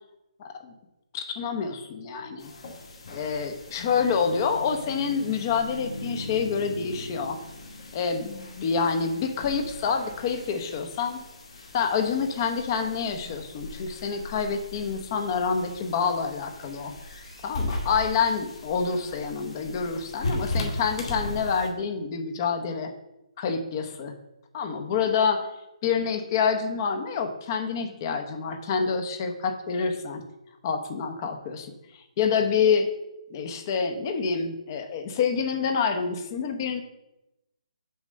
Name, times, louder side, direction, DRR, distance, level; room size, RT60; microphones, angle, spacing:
voice 1, 0.4-0.7 1.1-2.5 3.1-7.4 7.9-11.2 11.7-16.9 17.4-22.9 23.4-24.1 24.5-25.5 25.8-30.2 30.6-32.9 33.3-36.8, left 6 dB, 30° left, 7 dB, 1.0 m, -27 dB
sound 1, 2.4-21.7, left 1 dB, 55° left, 2.3 m, -38 dB
6.9 x 5.1 x 6.8 m, 0.92 s
hypercardioid pair, 160°, 4 cm